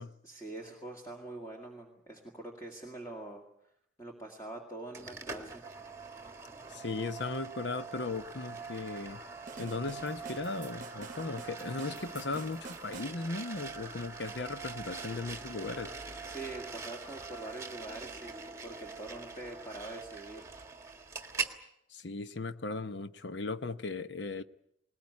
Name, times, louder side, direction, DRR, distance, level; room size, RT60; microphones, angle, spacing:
voice 1, 0.2-3.4 4.0-5.6 16.2-20.5, right 2 dB, 15° left, 2.1 m, -44 dB
sound 1, 4.9-21.6, right 4 dB, 15° right, 1.6 m, -43 dB
voice 2, 6.7-9.2 9.6-15.9 21.9-24.4, left 3 dB, 60° left, 0.9 m, -37 dB
sound 2, 9.5-13.2, right 4 dB, 40° right, 0.9 m, -49 dB
20.5 x 19.5 x 9.6 m
head